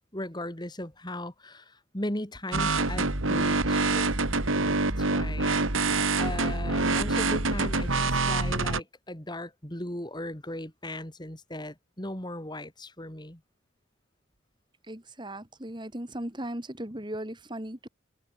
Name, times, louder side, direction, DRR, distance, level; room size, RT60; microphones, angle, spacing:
voice 1, 0.0-4.1 5.0-5.6 6.2-13.4, left 1 dB, 20° left, 3.5 m, -37 dB
sound 1, 2.5-8.8, right 3 dB, 85° right, 3.0 m, -26 dB
voice 2, 14.9-17.9, right 1 dB, 25° right, 2.7 m, -37 dB
head